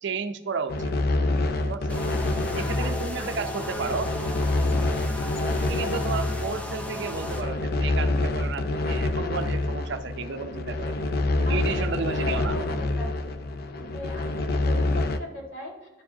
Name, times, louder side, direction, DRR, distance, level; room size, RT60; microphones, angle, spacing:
voice 1, 0.0-0.9 1.6-2.0 2.5-4.1 5.6-10.9 11.4-12.6, right 5 dB, 60° right, 10 dB, 0.5 m, -32 dB
sound 1, 0.7-15.2, left 2 dB, 50° left, 0.5 m, -27 dB
sound 2, 1.9-7.4, left 1 dB, 5° left, 0.6 m, -36 dB
voice 2, 3.2-4.4 5.5-6.0 11.4-13.1 13.8-15.9, left 1 dB, 80° left, -1 dB, 2.0 m, -39 dB
11.0 x 4.8 x 2.7 m, 0.99 s
head